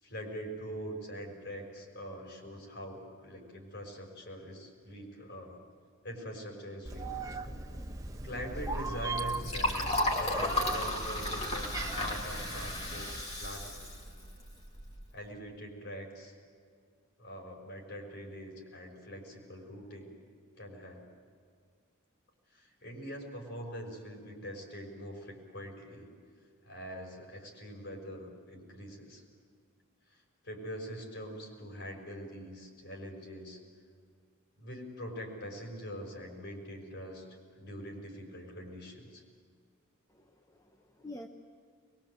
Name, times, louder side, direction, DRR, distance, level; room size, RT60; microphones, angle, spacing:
voice 1, 0.0-5.6 6.0-7.1 8.2-13.8 15.1-16.4 17.2-20.1 20.6-21.0 22.5-26.1 26.6-29.2 30.4-33.6 34.6-37.3 37.6-39.2, equal, 60° left, 1 dB, 5.8 m, -43 dB
Meow, 6.8-13.2, right 3 dB, 15° right, 1.1 m, -39 dB
Liquid, 8.3-15.0, left 1 dB, 30° left, 3.2 m, -34 dB
voice 2, 40.1-41.3, left 1 dB, 15° left, 3 dB, 1.0 m, -48 dB
23.0 x 22.5 x 7.9 m, 2.1 s
head